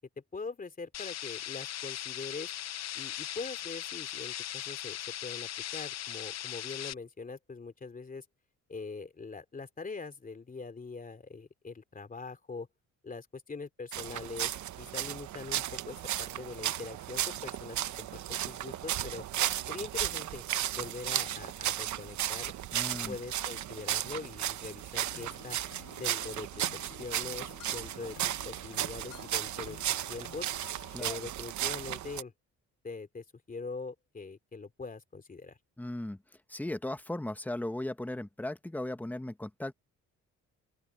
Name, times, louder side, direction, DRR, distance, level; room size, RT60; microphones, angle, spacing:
voice 1, 0.2-2.5 2.9-8.2 8.7-12.7 13.0-19.2 19.7-20.4 20.7-22.5 23.0-25.6 26.0-26.7 27.0-30.5 31.0-32.3 32.8-35.6, left 4 dB, 30° left, 3.1 m, -43 dB
sound 1, 0.9-6.9, left 12 dB, 60° left, 0.8 m, -39 dB
sound 2, 13.9-32.2, right 12 dB, 70° right, 1.1 m, -35 dB
voice 2, 22.7-23.1 30.9-31.2 35.8-36.2 36.5-39.7, left 1 dB, 5° left, 1.4 m, -37 dB
sound 3, 25.0-31.0, left 12 dB, 85° left, 3.4 m, -53 dB
open air
cardioid pair, 90°, 30 cm